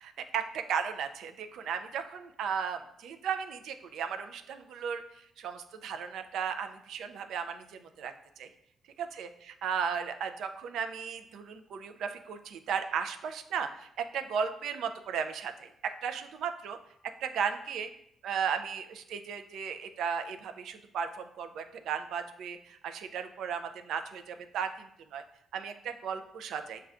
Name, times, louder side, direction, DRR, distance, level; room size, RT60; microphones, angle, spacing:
voice 1, 0.0-8.5 9.0-15.7 16.0-16.8 17.2-17.9 18.2-25.2 25.5-26.8, right 7 dB, 75° right, 7 dB, 0.3 m, -35 dB
6.1 x 2.2 x 2.4 m, 0.75 s
cardioid pair, 90°, 0 cm